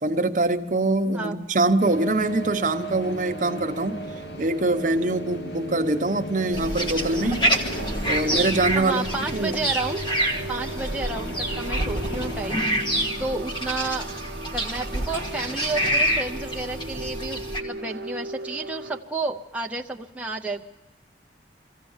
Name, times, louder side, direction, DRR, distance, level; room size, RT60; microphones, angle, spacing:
voice 1, 0.0-4.0 4.4-7.5 8.0-9.1 9.3-9.6, right 2 dB, 45° right, 1.0 m, -24 dB
sound 1, 1.8-12.7, right 1 dB, 65° left, 1.2 m, -36 dB
sound 2, 6.5-17.6, right 1 dB, 25° left, 1.5 m, -27 dB
sound 3, 7.6-19.0, right 2 dB, 70° right, 0.9 m, -37 dB
voice 2, 8.7-10.0 10.5-12.9 13.2-14.2 14.5-20.6, right 3 dB, 5° right, 0.6 m, -31 dB
23.5 x 15.5 x 7.3 m
head